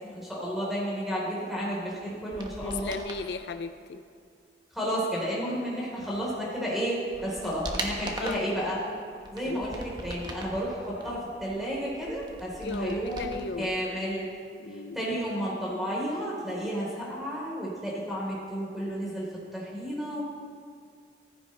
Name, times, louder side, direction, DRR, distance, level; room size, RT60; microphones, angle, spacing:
voice 1, 0.0-3.0 4.7-8.8 9.3-14.3 14.9-19.3 19.5-20.2, equal, ahead, -6 dB, 3.7 m, -32 dB
sound 1, 2.2-3.3 6.3-6.4 6.9-8.6 9.1-10.6 11.0-13.7 13.9-14.0, right 1 dB, 25° right, 1.0 m, -39 dB
voice 2, 2.6-4.0 7.4-7.6 8.2-8.4 9.5-9.8 12.6-13.7 14.6-15.0, left 4 dB, 70° left, 9 dB, 0.5 m, -36 dB
15.0 x 14.0 x 3.3 m, 2.1 s
head